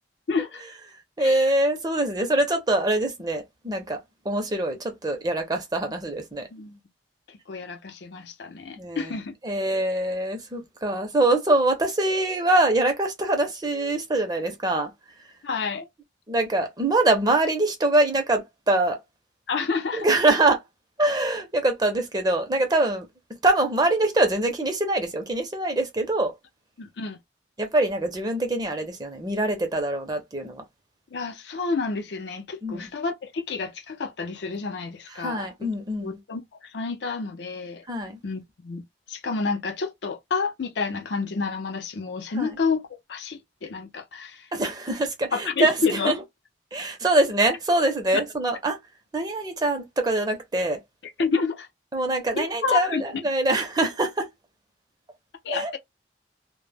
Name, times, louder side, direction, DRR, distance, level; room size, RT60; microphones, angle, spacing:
voice 1, 0.3-0.6 1.2-1.4 6.5-6.8 7.3-9.3 15.4-15.9 19.5-20.1 26.8-27.2 31.1-35.7 36.0-37.8 38.2-38.8 39.1-44.5 45.3-46.1 51.2-51.7 52.4-53.0 55.4-55.8, left 4 dB, 75° left, 0.5 m, -29 dB
voice 2, 1.2-4.0 4.2-6.5 8.8-9.1 9.4-14.9 16.3-19.0 19.9-20.6 21.0-23.1 23.4-26.3 27.6-30.6 32.6-32.9 35.1-36.2 37.9-38.2 42.4-42.5 44.5-46.1 46.7-48.8 49.1-50.8 51.9-54.3 55.5-55.7, right 2 dB, 20° right, 0.5 m, -24 dB
2.1 x 2.0 x 3.3 m
head